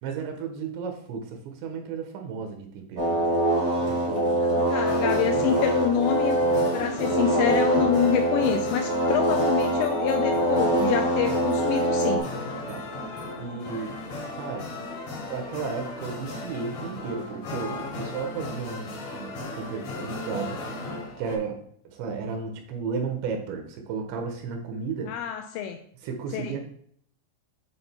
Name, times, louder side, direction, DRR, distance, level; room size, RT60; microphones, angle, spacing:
voice 1, 0.0-3.2 3.8-4.6 12.7-12.8 13.4-14.0 14.3-14.7 15.3-20.6 21.2-21.6 21.9-25.1 26.0-26.6, right 5 dB, 80° right, 4 dB, 3.0 m, -34 dB
sound 1, 3.0-12.2, right 1 dB, 65° right, 0.7 m, -24 dB
voice 2, 4.4-6.4 6.7-12.3 25.1-25.8 26.3-26.6, left 9 dB, 85° left, 5 dB, 2.6 m, -27 dB
sound 2, 4.8-21.4, left 2 dB, 60° left, 1.9 m, -36 dB
9.0 x 3.6 x 4.3 m, 0.63 s
omnidirectional pair, 5.5 m